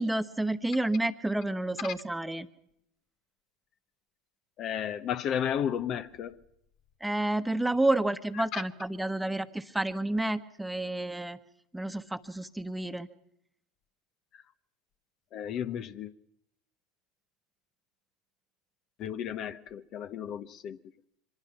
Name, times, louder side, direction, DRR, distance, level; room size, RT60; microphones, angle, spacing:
voice 1, 0.0-2.5 7.0-11.4 11.7-13.1, right 2 dB, 5° right, 1.3 m, -30 dB
voice 2, 4.6-6.4 8.5-8.6 15.3-16.1 19.0-20.8, left 9 dB, 50° left, 0.9 m, -33 dB
24.5 x 21.5 x 5.9 m
hypercardioid pair, 80°, 0 cm